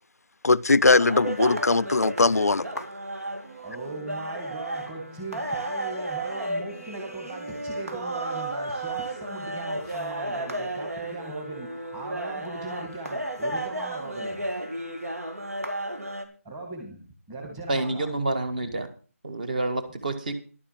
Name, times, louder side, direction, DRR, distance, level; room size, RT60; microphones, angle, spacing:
voice 1, 0.4-2.6, left 3 dB, 90° left, 0.5 m, -20 dB
sound 1, 1.0-16.3, right 1 dB, 75° right, 2.5 m, -33 dB
voice 2, 3.6-14.5 16.4-18.1, right 2 dB, 10° right, 2.0 m, -38 dB
voice 3, 17.7-18.9 19.2-20.3, right 2 dB, 35° right, 1.6 m, -28 dB
11.5 x 8.5 x 5.9 m
figure-of-eight pair, 170°, 8 cm